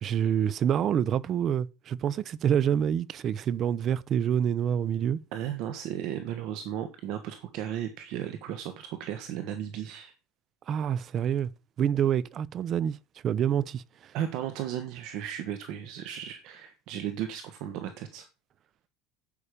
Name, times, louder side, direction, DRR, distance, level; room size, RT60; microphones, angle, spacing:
voice 1, 0.0-5.2 10.7-11.5 11.8-13.0 13.2-14.1, right 9 dB, 30° right, 0.6 m, -27 dB
voice 2, 5.3-10.1 14.1-18.3, right 10 dB, 55° right, 1.4 m, -35 dB
11.0 x 8.5 x 5.1 m
cardioid pair, 175°, 0 cm